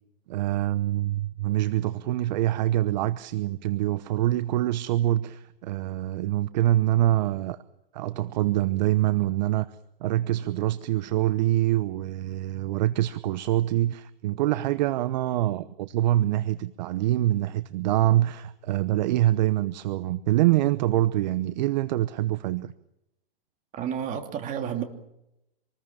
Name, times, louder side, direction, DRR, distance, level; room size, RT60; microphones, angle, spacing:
voice 1, 0.3-7.6 7.9-22.7, right 14 dB, 45° right, 1.0 m, -25 dB
voice 2, 23.7-24.8, right 8 dB, 25° right, 2.9 m, -30 dB
26.5 x 20.5 x 7.5 m
hypercardioid pair, 130°, 30 cm